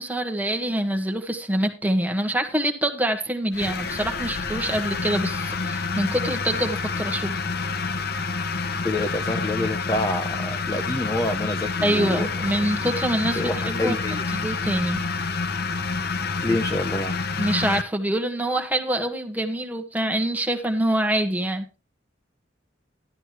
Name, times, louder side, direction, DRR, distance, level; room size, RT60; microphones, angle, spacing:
voice 1, 0.0-7.4 11.8-13.9 14.3-15.1 17.4-21.6, right 1 dB, 10° right, 4 dB, 1.5 m, -25 dB
sound 1, 3.5-17.8, left 4 dB, 55° left, 0.8 m, -28 dB
voice 2, 8.8-12.3 13.4-14.2 16.4-17.1, left 1 dB, 20° left, 7 dB, 0.8 m, -27 dB
12.0 x 11.0 x 3.1 m, 0.30 s
head